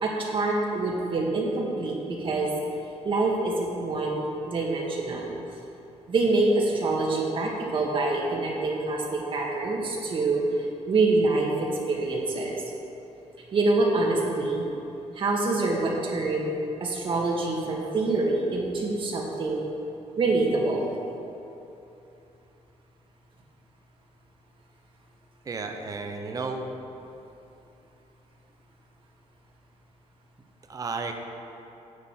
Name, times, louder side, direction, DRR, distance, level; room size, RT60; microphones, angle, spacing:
voice 1, 0.0-2.5 3.0-5.4 6.1-10.4 10.9-12.6 13.5-14.6 15.2-16.5 16.8-19.6 20.2-20.9, right 3 dB, 45° right, -1 dB, 1.9 m, -26 dB
voice 2, 25.4-26.7 30.7-31.1, right 4 dB, 30° right, 4 dB, 0.9 m, -33 dB
9.6 x 6.5 x 7.5 m, 2.8 s
cardioid pair, 125°, 12 cm